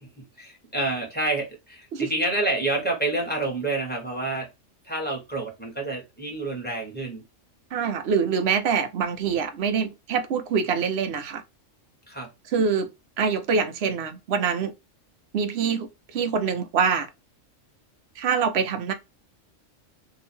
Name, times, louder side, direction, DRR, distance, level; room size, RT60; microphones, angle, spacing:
voice 1, 0.0-4.5 4.8-7.2 12.1-12.3, right 2 dB, 10° left, 1.2 m, -28 dB
voice 2, 7.7-11.4 12.5-12.9 13.2-14.7 15.3-15.9 16.1-17.1 18.2-18.9, right 6 dB, 60° right, 0.8 m, -25 dB
2.9 x 2.5 x 4.3 m
omnidirectional pair, 1.3 m